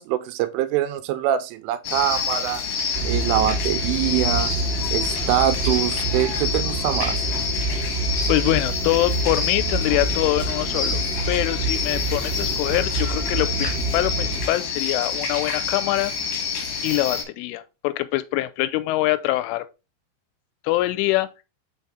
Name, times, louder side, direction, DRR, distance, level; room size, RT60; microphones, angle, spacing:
voice 1, 0.0-2.6 3.0-4.5 4.9-7.3, right 12 dB, 85° right, 3.1 m, -24 dB
sound 1, 1.8-17.2, left 6 dB, 60° left, 2.4 m, -28 dB
sound 2, 2.9-14.5, right 3 dB, 55° right, 0.7 m, -27 dB
voice 2, 8.3-11.0 11.3-16.1 16.8-19.6 20.6-21.3, left 17 dB, 85° left, 3.1 m, -24 dB
5.8 x 5.4 x 3.6 m
omnidirectional pair, 5.6 m